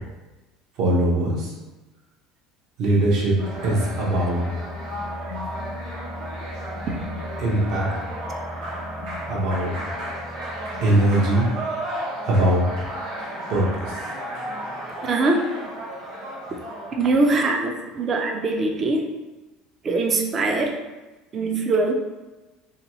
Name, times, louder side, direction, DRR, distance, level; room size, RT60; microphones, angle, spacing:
voice 1, 0.8-1.5 2.8-3.4 3.6-4.4 7.4-7.9 9.3-9.7 10.8-11.5 12.2-12.6 13.5-14.0, right 1 dB, 60° right, -2 dB, 0.8 m, -21 dB
sound 1, 3.1-11.9, left 3 dB, 40° left, 0.3 m, -38 dB
sound 2, 3.4-17.1, right 1 dB, 80° right, 1.1 m, -33 dB
voice 2, 15.0-15.5 17.0-19.1 19.8-20.8 21.3-21.9, right 3 dB, 30° right, 2 dB, 0.4 m, -22 dB
2.8 x 2.2 x 3.0 m, 1.1 s
cardioid pair, 140°, 0 cm